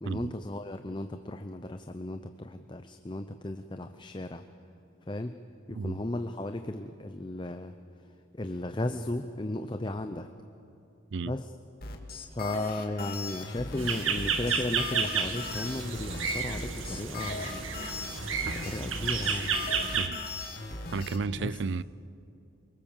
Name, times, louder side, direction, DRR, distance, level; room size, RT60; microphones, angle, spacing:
voice 1, 0.0-4.4 5.1-5.4 5.7-7.7 8.3-10.3 11.2-11.5 12.3-17.8 18.4-19.6 21.4-21.6, left 1 dB, 25° left, 0.6 m, -35 dB
sound 1, 11.8-21.2, left 4 dB, 50° left, 2.1 m, -39 dB
sound 2, 13.8-20.1, right 5 dB, 90° right, 1.8 m, -31 dB
voice 2, 20.9-21.8, right 4 dB, 65° right, 0.5 m, -33 dB
24.0 x 22.0 x 7.3 m
head